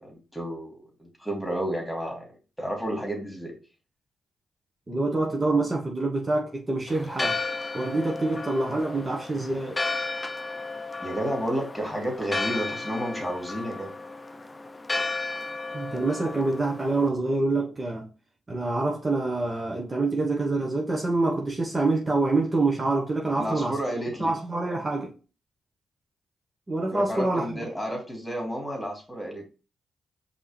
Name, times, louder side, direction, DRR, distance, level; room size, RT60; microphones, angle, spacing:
voice 1, 0.0-2.3 2.6-3.6 11.0-13.9 23.2-24.3 26.9-29.4, equal, 10° left, 2.3 m, -31 dB
voice 2, 4.9-7.4 7.7-9.8 15.7-18.1 18.5-23.8 24.2-25.1 26.7-27.6, right 2 dB, 30° right, 1.1 m, -26 dB
Church bell, 6.9-17.1, left 3 dB, 25° left, 0.5 m, -33 dB
5.2 x 2.9 x 3.3 m
supercardioid pair, 55°, 0 cm